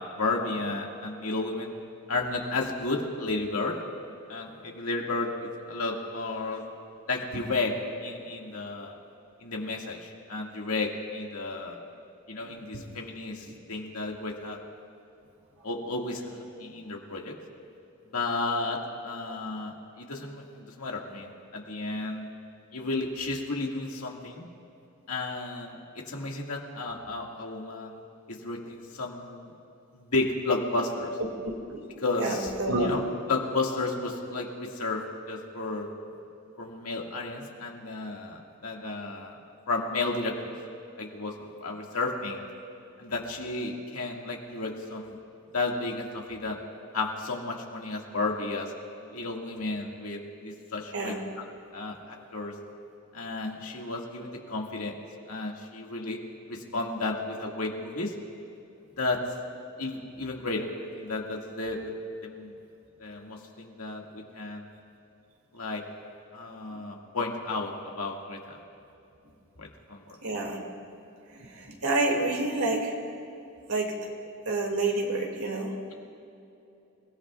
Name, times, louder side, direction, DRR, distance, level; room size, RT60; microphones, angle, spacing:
voice 1, 0.0-1.7 2.1-3.8 4.3-6.6 7.1-7.7 8.0-9.0 9.4-11.8 12.3-14.6 15.6-17.3 18.1-22.3 22.7-24.5 25.1-28.0 28.3-29.5 29.9-31.2 32.0-32.5 32.8-33.0 33.3-35.9 36.6-39.4 39.7-40.5 41.0-42.4 43.0-45.2 45.5-46.6 46.9-48.7 49.1-50.2 50.4-51.2 51.7-52.5 53.1-54.9 55.3-56.2 56.5-58.1 59.0-59.2 59.8-61.9 62.2-62.5 63.0-64.7 65.5-65.8 66.3-68.6 69.6-70.0, left 3 dB, 80° left, 0 dB, 2.0 m, -32 dB
voice 2, 31.2-31.8 32.2-32.9 50.9-51.2 66.7-66.8 70.2-70.6 71.3-72.9 73.7-73.9 74.2-75.7, right 2 dB, 80° right, 1 dB, 2.4 m, -29 dB
28.5 x 17.5 x 2.4 m, 2.8 s
head